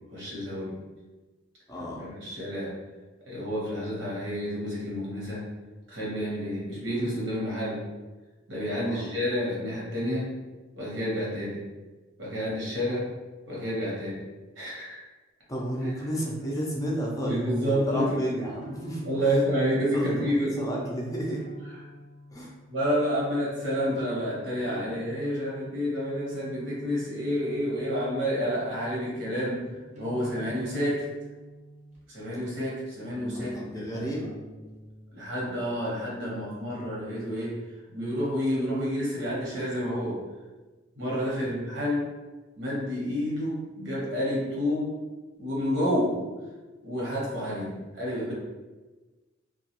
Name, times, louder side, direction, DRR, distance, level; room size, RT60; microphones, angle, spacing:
voice 1, 0.1-0.8 2.0-2.7 3.3-5.4 5.9-7.8 8.5-10.3 10.8-11.6 12.2-13.1 13.5-14.2 14.6-15.0 17.3-18.2 19.1-20.6 22.7-29.6 30.0-31.0 32.1-34.0 35.1-37.6 37.9-40.2 41.0-42.1 42.6-44.9 45.4-46.2 46.8-48.3, equal, 75° right, -6 dB, 1.0 m, -29 dB
voice 2, 1.7-2.1 8.7-9.1 15.5-19.4 19.9-21.4 22.3-22.5 33.3-34.3 41.4-41.5, equal, 20° left, -3 dB, 0.4 m, -33 dB
sound 1, 16.0-32.3 33.1-35.0, right 1 dB, 40° right, 0.6 m, -47 dB
2.3 x 2.2 x 2.8 m, 1.2 s
head